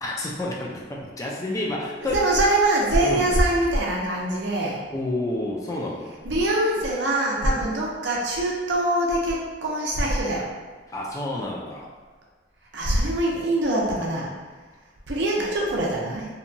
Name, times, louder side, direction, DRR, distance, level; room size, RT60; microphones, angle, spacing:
voice 1, 0.0-2.2 3.0-3.3 4.9-6.2 7.5-7.7 10.9-11.9, left 1 dB, 20° left, -3 dB, 0.3 m, -29 dB
voice 2, 2.1-4.8 6.2-10.5 12.7-14.3 15.1-16.3, right 1 dB, 70° right, -3 dB, 0.6 m, -23 dB
2.8 x 2.2 x 2.6 m, 1.4 s
head